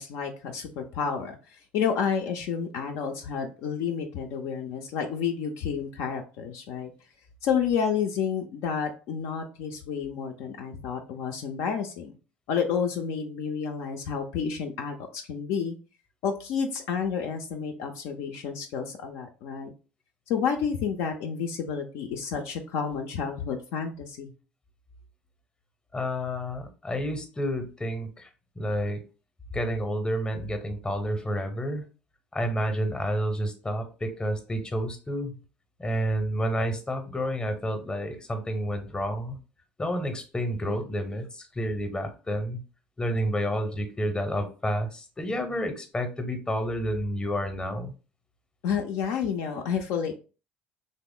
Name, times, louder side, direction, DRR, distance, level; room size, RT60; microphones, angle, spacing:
voice 1, 0.0-6.9 7.4-12.1 12.5-15.8 16.2-19.7 20.3-24.3 48.6-50.2, left 7 dB, 60° left, 3 dB, 0.4 m, -30 dB
voice 2, 25.9-28.3 28.6-29.0 29.5-31.8 32.3-35.3 35.8-39.4 39.8-42.6 43.0-47.9, equal, 15° left, 7 dB, 0.7 m, -30 dB
3.0 x 2.0 x 3.6 m, 0.35 s
figure-of-eight pair, 60°, 6 cm